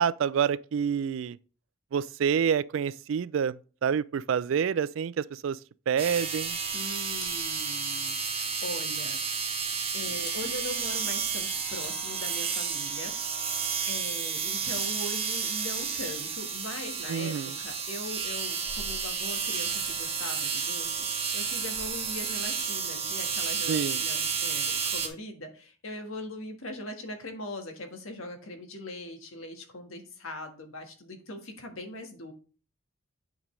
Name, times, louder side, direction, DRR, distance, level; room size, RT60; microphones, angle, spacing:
voice 1, 0.0-1.4 1.9-5.6 5.9-6.6 17.1-17.6 23.7-24.0, right 7 dB, 65° right, 0.3 m, -27 dB
sound 1, 6.0-25.1, right 6 dB, 30° right, 1.2 m, -31 dB
voice 2, 6.7-9.2 9.5-9.7 9.9-13.1 13.4-32.3, left 1 dB, 75° left, 1.5 m, -41 dB
sound 2, 7.2-7.7 8.6-9.0 10.2-10.6 11.8-12.7, left 2 dB, 20° left, 1.7 m, -50 dB
8.7 x 5.2 x 3.2 m
head